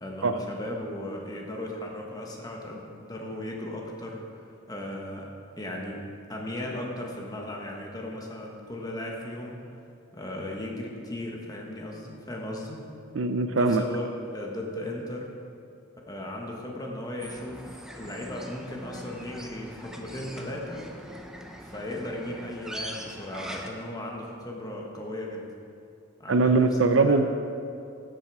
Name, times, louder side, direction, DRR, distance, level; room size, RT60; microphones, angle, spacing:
voice 1, 0.0-4.2 4.7-5.3 5.6-6.0 6.3-9.6 10.1-12.8 13.5-15.3 16.1-17.6 17.9-20.9 21.6-25.4 26.2-27.2, left 1 dB, 20° left, 0 dB, 1.3 m, -36 dB
voice 2, 13.1-13.8 26.3-27.2, right 3 dB, 65° right, 9 dB, 0.5 m, -21 dB
sound 1, 17.2-23.7, equal, 5° right, 0.6 m, -42 dB
13.0 x 7.5 x 4.8 m, 2.5 s
head